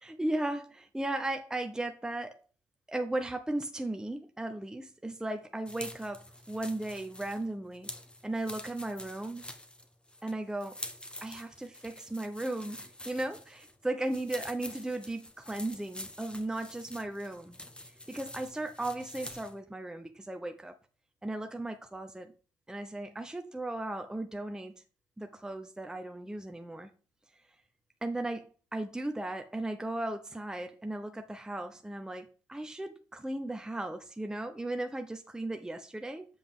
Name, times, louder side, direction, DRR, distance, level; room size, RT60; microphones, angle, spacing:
voice 1, 0.0-2.4 2.9-7.9 8.2-9.4 10.2-10.8 11.2-17.6 18.1-20.7 21.2-22.3 22.7-24.7 25.2-26.9 28.0-36.2, right 1 dB, 10° right, 0.8 m, -36 dB
sound 1, 5.7-19.6, left 1 dB, 10° left, 1.2 m, -47 dB
7.8 x 5.1 x 3.6 m
hypercardioid pair, 55°, 8 cm